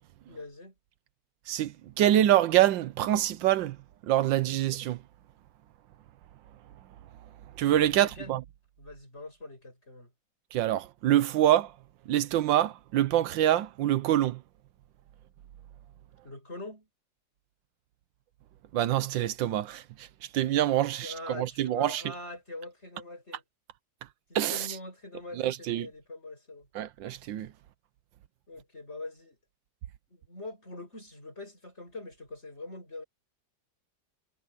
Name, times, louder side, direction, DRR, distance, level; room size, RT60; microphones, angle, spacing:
voice 1, 0.3-0.7 7.9-8.4 8.8-10.1 16.2-16.9 21.0-23.4 24.3-26.7 28.5-29.4 30.1-33.0, left 2 dB, 35° left, 7.6 m, -43 dB
voice 2, 1.5-3.8 4.0-5.0 7.6-8.4 10.5-11.7 12.1-14.4 18.7-20.1 20.3-22.0 24.3-24.7 25.4-25.9 26.7-27.5, right 12 dB, 85° right, 1.5 m, -25 dB
omnidirectional pair, 2.0 m